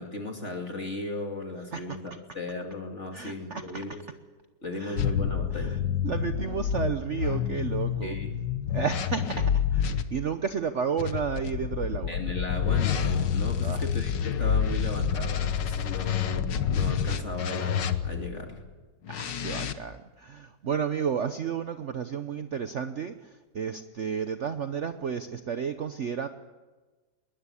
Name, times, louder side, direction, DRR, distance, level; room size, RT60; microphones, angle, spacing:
voice 1, 0.0-4.0 4.6-5.8 8.0-8.4 12.1-18.6, left 2 dB, 40° left, 3 dB, 2.6 m, -36 dB
voice 2, 3.1-3.6 4.8-5.0 5.5-5.8 6.0-8.2 8.7-12.1 13.6-13.8 16.0-16.1 19.1-26.3, right 7 dB, 50° right, 9 dB, 1.0 m, -32 dB
sound 1, 5.0-10.0 11.0-18.3 19.1-19.7, left 8 dB, 80° left, 1.8 m, -28 dB
21.0 x 20.5 x 8.4 m, 1.3 s
omnidirectional pair, 1.9 m